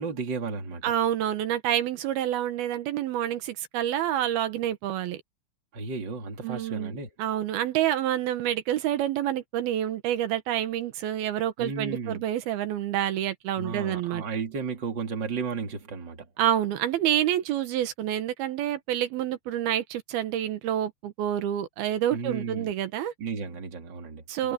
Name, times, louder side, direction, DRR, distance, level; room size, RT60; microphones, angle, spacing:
voice 1, 0.0-0.9 5.7-7.1 11.6-12.2 13.6-16.3 22.1-22.7 23.2-24.5, right 4 dB, 30° right, 3.1 m, -34 dB
voice 2, 0.8-5.2 6.4-14.2 16.4-23.1 24.3-24.5, right 11 dB, 85° right, 3.2 m, -28 dB
omnidirectional pair, 4.3 m